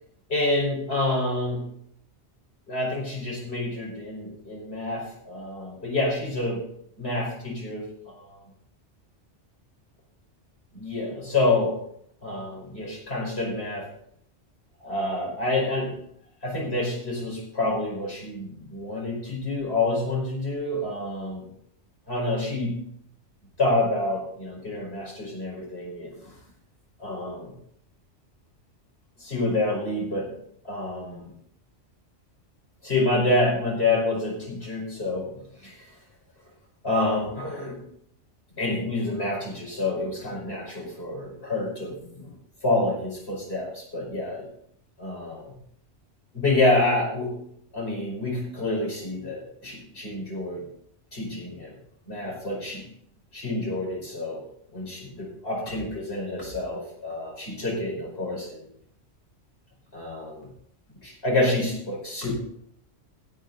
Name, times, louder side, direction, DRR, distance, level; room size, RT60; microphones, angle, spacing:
voice 1, 0.3-1.6 2.7-6.6 7.0-8.4 10.7-11.8 12.2-13.9 14.8-16.0 16.4-21.5 22.1-22.8 23.6-26.3 27.0-27.5 29.2-30.3 30.6-31.3 32.8-35.9 36.8-37.8 38.6-42.3 42.6-44.5 45.0-45.5 46.3-47.4 47.7-50.7 51.1-51.7 52.1-52.8 53.3-54.4 54.7-58.7 59.9-60.5 61.0-62.3, left 2 dB, 60° left, -2 dB, 5.4 m, -28 dB
16.5 x 9.2 x 4.0 m, 0.69 s
omnidirectional pair, 1.2 m